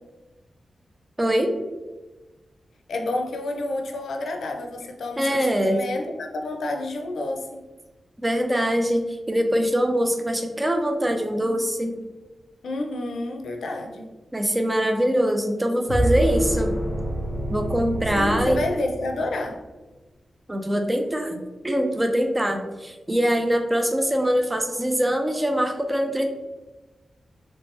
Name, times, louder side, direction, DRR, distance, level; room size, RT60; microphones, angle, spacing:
voice 1, 1.2-1.5 5.2-5.8 8.2-12.0 14.3-16.7 17.5-18.6 20.5-21.4 21.6-26.2, equal, 15° right, 4 dB, 0.4 m, -23 dB
voice 2, 2.9-7.7 12.6-14.1 18.1-19.6, left 2 dB, 90° left, 3 dB, 0.5 m, -29 dB
sound 1, 15.9-19.3, right 1 dB, 65° right, 1.1 m, -27 dB
3.1 x 2.9 x 3.1 m, 1.2 s
wide cardioid pair, 110°, 0 cm